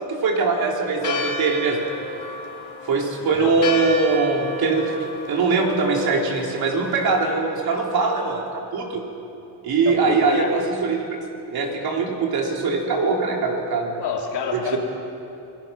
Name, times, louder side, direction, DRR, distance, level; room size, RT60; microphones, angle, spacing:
voice 1, 0.0-1.8 2.9-9.0 9.6-11.1 11.5-14.0 14.5-14.8, right 4 dB, 60° right, 0 dB, 4.0 m, -22 dB
Church bell, 1.0-7.3, left 3 dB, 50° left, 2.9 m, -32 dB
voice 2, 3.2-3.5 9.8-10.5 14.0-14.8, left 6 dB, 70° left, 1 dB, 3.1 m, -28 dB
26.5 x 17.5 x 6.1 m, 2.7 s
cardioid pair, 110°, 42 cm